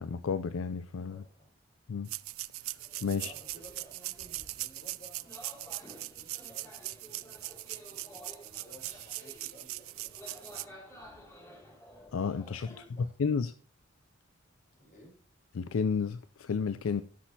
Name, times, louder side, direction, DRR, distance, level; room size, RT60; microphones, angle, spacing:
voice 1, 0.0-1.2 1.9-2.1 3.0-3.3 12.1-12.7 13.2-13.5 15.6-17.0, left 5 dB, 75° left, 0.4 m, -31 dB
voice 2, 1.1-1.5 3.1-7.4 7.8-11.6 12.5-13.2 14.7-15.2, equal, 40° left, 4.4 m, -57 dB
sound 1, 2.1-10.6, right 18 dB, 85° right, 0.4 m, -41 dB
sound 2, 2.8-12.8, equal, 15° left, 2.5 m, -53 dB
Crash cymbal, 8.8-11.2, right 5 dB, 35° right, 4.0 m, -60 dB
17.5 x 6.2 x 2.8 m
head